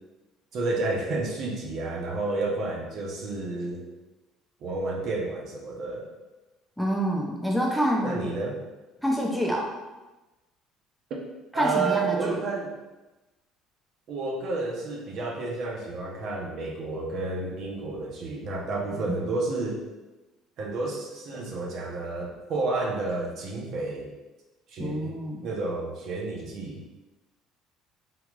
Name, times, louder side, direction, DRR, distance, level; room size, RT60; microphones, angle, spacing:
voice 1, 0.5-3.8 4.6-6.1 8.0-8.7 11.1-11.2 11.5-12.7 14.1-19.8 20.6-24.1 24.7-25.2 25.4-26.8, right 3 dB, 60° right, -1 dB, 0.7 m, -30 dB
voice 2, 6.8-8.2 9.0-9.7 11.5-12.4 18.9-19.2 24.8-25.4, equal, ahead, -2 dB, 0.6 m, -27 dB
3.7 x 2.9 x 2.4 m, 1.1 s
supercardioid pair, 90°, 0 cm